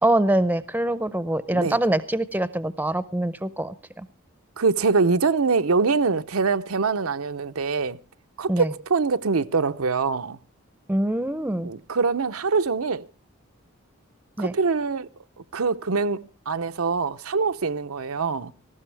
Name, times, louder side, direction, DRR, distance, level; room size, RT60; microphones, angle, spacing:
voice 1, 0.0-4.1 8.5-8.7 10.9-11.7 14.4-14.5, right 1 dB, 10° right, 0.6 m, -24 dB
voice 2, 4.6-8.0 8.4-10.4 11.6-13.1 14.4-15.1 15.5-18.5, right 4 dB, 85° right, 0.7 m, -24 dB
18.5 x 15.0 x 3.4 m
head